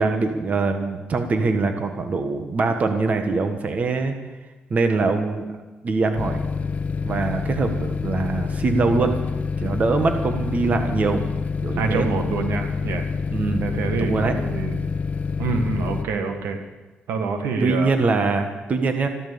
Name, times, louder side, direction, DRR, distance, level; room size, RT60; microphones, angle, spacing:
voice 1, 0.0-4.1 4.7-5.5 5.8-6.4 7.0-9.1 9.6-11.2 11.6-12.1 13.3-13.6 14.0-14.3 17.6-19.1, right 3 dB, 40° right, 6 dB, 1.5 m, -23 dB
sound 1, 6.2-16.0, left 5 dB, 40° left, 0.9 m, -27 dB
voice 2, 11.8-13.1 13.6-14.9 15.4-16.6 17.1-18.0, right 4 dB, 85° right, 6 dB, 1.8 m, -26 dB
14.0 x 13.0 x 7.0 m, 1.2 s
cardioid pair, 110°, 4 cm